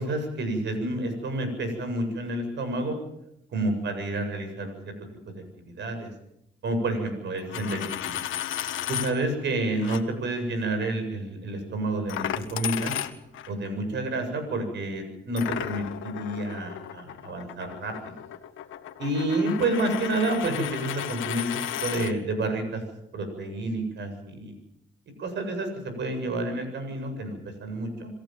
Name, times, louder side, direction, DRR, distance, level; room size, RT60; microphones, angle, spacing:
voice 1, 0.0-3.0 3.5-4.9 5.3-6.1 6.6-8.2 8.9-12.9 13.5-17.9 19.0-22.8 23.1-24.5 25.2-28.1, right 2 dB, 65° right, 7 dB, 7.8 m, -29 dB
Coin (dropping), 7.4-9.1 9.8-10.0 12.1-13.5 15.4-22.1, left 11 dB, 80° left, 1.8 m, -34 dB
28.0 x 15.5 x 7.7 m, 0.82 s
cardioid pair, 90°, 20 cm